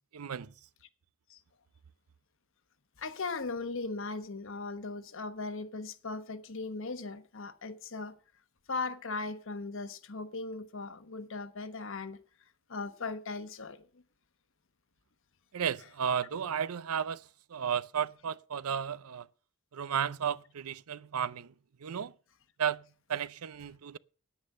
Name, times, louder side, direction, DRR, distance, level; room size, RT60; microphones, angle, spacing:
voice 1, 0.1-0.5 15.5-17.2 17.5-19.3 19.7-21.5 21.8-22.1 22.6-22.8 23.1-24.0, right 8 dB, 80° right, 0.5 m, -33 dB
voice 2, 3.0-8.1 8.7-12.2 12.7-13.9, left 3 dB, 60° left, 1.1 m, -38 dB
9.7 x 9.6 x 6.5 m
head